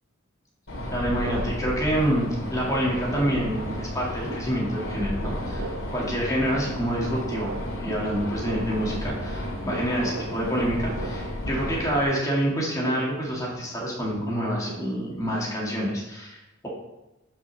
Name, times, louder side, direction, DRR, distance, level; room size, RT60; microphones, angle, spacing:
sound 1, 0.7-12.0, left 1 dB, 80° left, 2.4 m, -33 dB
voice 1, 0.9-16.7, equal, 15° left, -4 dB, 2.1 m, -27 dB
sound 2, 1.2-2.5 2.7-15.9, right 3 dB, 70° right, 0.5 m, -40 dB
5.8 x 5.6 x 6.3 m, 1.0 s
head